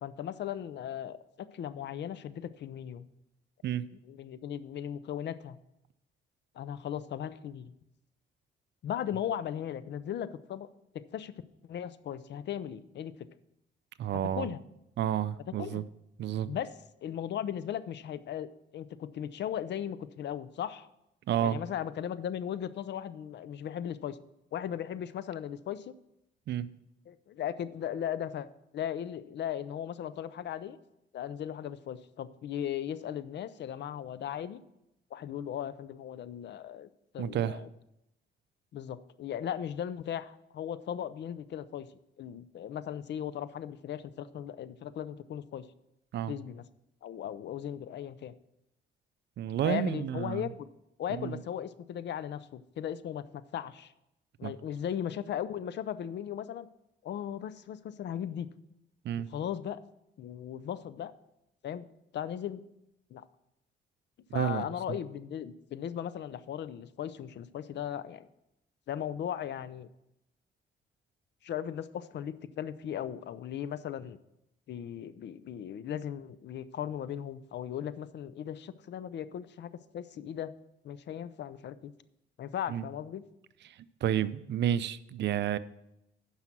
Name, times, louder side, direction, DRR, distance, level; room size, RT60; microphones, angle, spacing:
voice 1, 0.0-3.1 4.1-5.6 6.5-7.7 8.8-10.7 10.9-11.3 11.7-13.1 14.4-14.6 15.6-15.8 16.5-16.7 17.0-18.5 18.7-20.9 21.4-24.2 24.5-25.9 27.1-28.5 28.7-30.8 31.1-34.6 35.1-36.9 37.1-37.7 38.7-41.9 42.2-45.7 46.3-46.6 47.0-48.3 49.6-50.7 51.0-53.9 54.4-56.7 57.0-58.5 59.3-59.8 60.2-61.1 61.6-61.9 62.1-62.6 63.1-63.2 64.3-68.3 68.9-69.9 71.4-74.2 74.7-80.5 80.8-81.9 82.4-83.2, left 10 dB, 60° left, 15 dB, 0.6 m, -37 dB
voice 2, 14.0-14.5 15.0-15.8 16.2-16.5 21.3-21.6 26.5-26.7 37.2-37.6 46.1-46.3 49.4-50.5 51.1-51.4 54.4-54.5 59.0-59.3 64.3-65.0 82.7-82.9 83.6-85.6, right 10 dB, 60° right, 15 dB, 0.5 m, -31 dB
9.7 x 5.7 x 6.0 m, 0.85 s
cardioid pair, 90°, 20 cm